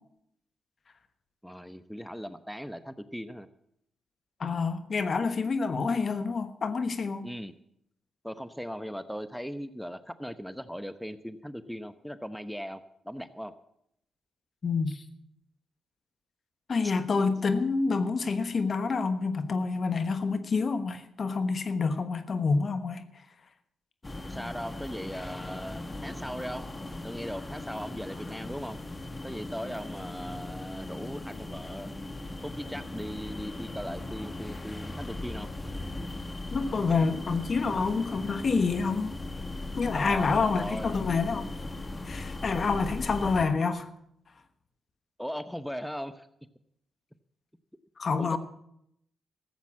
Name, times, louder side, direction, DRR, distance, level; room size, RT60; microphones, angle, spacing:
voice 1, 1.4-3.5 7.2-7.5 8.2-13.5 24.2-26.6 27.0-28.8 29.2-31.9 32.4-35.5 39.9-41.0 45.2-46.3 48.2-48.4, equal, ahead, 0.9 m, -38 dB
voice 2, 4.4-7.2 14.6-15.0 16.7-23.0 36.5-39.2 39.8-41.5 42.1-43.9 48.0-48.4, left 4 dB, 50° left, 1.2 m, -28 dB
sound 1, 24.0-43.5, left 2 dB, 25° left, 1.6 m, -38 dB
14.5 x 8.2 x 7.4 m
hypercardioid pair, 45°, 0 cm